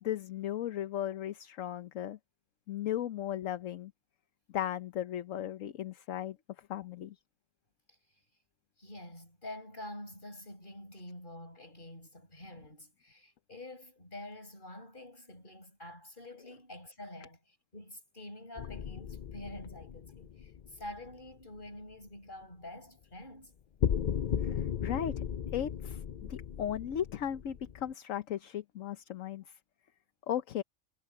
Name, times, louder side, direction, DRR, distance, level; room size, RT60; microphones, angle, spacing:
voice 1, 0.0-2.2 2.7-3.9 4.5-7.2 24.4-25.2 25.5-29.4 30.3-30.6, left 10 dB, 70° left, 1.2 m, -36 dB
voice 2, 8.8-23.5, left 1 dB, 35° left, 7.7 m, -47 dB
sound 1, 18.6-21.3 23.8-27.9, left 8 dB, 90° left, 0.3 m, -36 dB
omnidirectional pair, 1.4 m